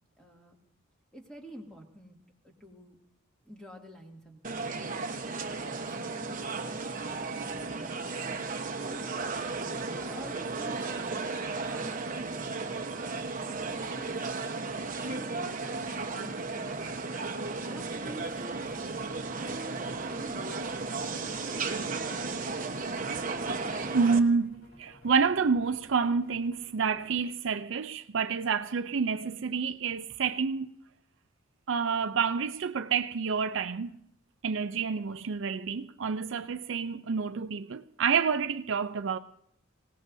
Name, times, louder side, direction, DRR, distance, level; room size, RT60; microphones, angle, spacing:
voice 1, 0.2-0.6 1.1-2.2 2.4-3.0 3.4-4.7 5.8-6.4 7.1-7.3 7.7-9.1 9.6-12.3 12.9-13.1 13.4-14.6 15.0-16.9 17.6-19.6 20.0-22.0, right 1 dB, 5° left, 2.5 m, -49 dB
sound 1, 4.4-24.2, right 3 dB, 40° right, 1.1 m, -34 dB
sound 2, 18.2-27.2, left 1 dB, 60° left, 8.0 m, -56 dB
voice 2, 23.9-30.7 31.7-34.0 34.4-39.2, right 5 dB, 65° right, 0.5 m, -28 dB
26.0 x 17.5 x 2.7 m
head